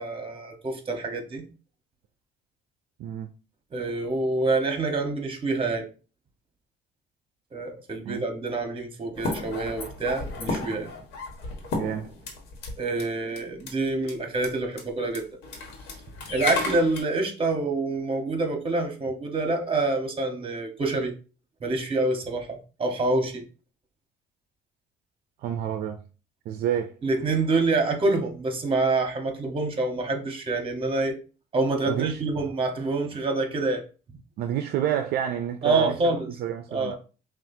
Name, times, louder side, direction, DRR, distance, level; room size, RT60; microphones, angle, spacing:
voice 1, 0.0-1.4 3.7-5.9 7.5-10.9 12.8-15.3 16.3-21.1 21.6-23.4 27.0-31.2 31.5-33.8 35.6-36.3 36.7-37.0, right 3 dB, 30° right, 1.2 m, -26 dB
voice 2, 3.0-3.3 8.0-8.2 11.8-12.1 25.4-26.0 26.5-26.9 31.9-32.2 34.4-36.0 36.4-36.9, right 10 dB, 70° right, 0.4 m, -29 dB
sound 1, 9.2-12.7 13.0-13.1 13.4-13.7 14.1-14.2 14.4-14.5 14.8-14.9 15.1-17.0, left 3 dB, 85° left, 1.3 m, -33 dB
5.8 x 2.4 x 2.7 m
cardioid pair, 110°, 17 cm